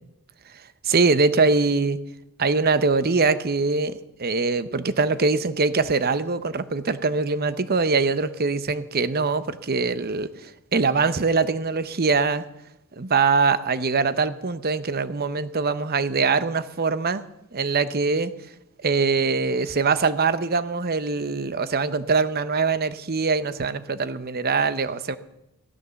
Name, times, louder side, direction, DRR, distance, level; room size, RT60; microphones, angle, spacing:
voice 1, 0.8-2.0 2.4-12.4 13.0-17.2 17.5-18.3 18.8-25.2, right 4 dB, 45° right, 13 dB, 0.8 m, -23 dB
16.0 x 13.0 x 7.0 m, 0.87 s
head